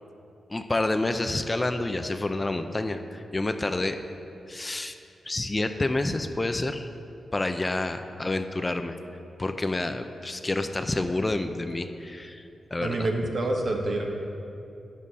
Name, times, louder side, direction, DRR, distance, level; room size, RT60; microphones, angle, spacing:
voice 1, 0.5-4.0 4.5-4.9 5.3-6.9 7.3-9.0 9.4-12.4 12.7-13.1, left 2 dB, 30° left, 8 dB, 0.5 m, -28 dB
voice 2, 12.8-14.1, right 2 dB, 60° right, 1 dB, 1.2 m, -27 dB
9.9 x 7.4 x 4.1 m, 2.7 s
cardioid pair, 55°, 0 cm